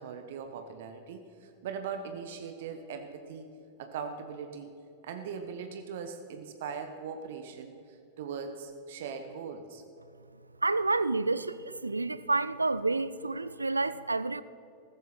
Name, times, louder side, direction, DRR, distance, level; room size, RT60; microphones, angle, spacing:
voice 1, 0.0-3.5 3.8-4.7 5.0-7.8 8.2-9.8, right 6 dB, 55° right, 1.0 m, -40 dB
voice 2, 10.6-14.4, right 3 dB, 80° right, 0.4 m, -29 dB
15.0 x 14.0 x 4.3 m
figure-of-eight pair, 90°, 0 cm